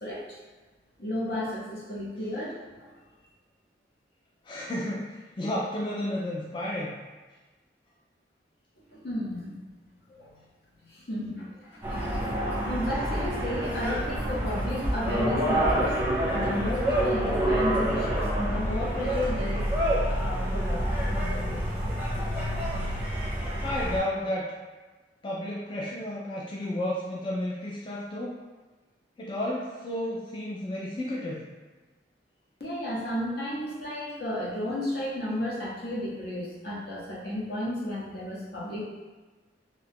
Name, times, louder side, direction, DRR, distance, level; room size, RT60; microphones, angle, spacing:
voice 1, 0.0-0.4 1.0-2.9 8.9-9.5 10.1-10.3 10.8-11.9 12.7-16.0 16.3-19.6 20.1-21.6 32.6-38.8, left 1 dB, 60° left, -5 dB, 0.8 m, -33 dB
voice 2, 4.4-7.0 23.6-24.5 25.2-28.4 29.2-31.4, left 1 dB, 25° left, -5 dB, 0.3 m, -32 dB
sound 1, 11.8-24.0, right 1 dB, 10° right, 0.6 m, -28 dB
2.7 x 2.3 x 3.4 m, 1.3 s
head